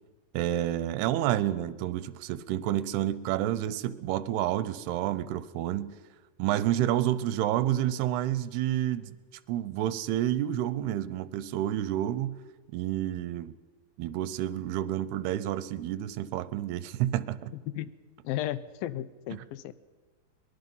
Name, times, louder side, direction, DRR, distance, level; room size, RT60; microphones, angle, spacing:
voice 1, 0.3-5.9 6.4-9.2 9.5-12.4 12.7-13.5 14.0-17.5 19.3-19.4, right 12 dB, 80° right, 2.7 m, -29 dB
voice 2, 18.2-19.7, left 13 dB, 80° left, 2.1 m, -34 dB
23.0 x 21.5 x 5.4 m
omnidirectional pair, 4.8 m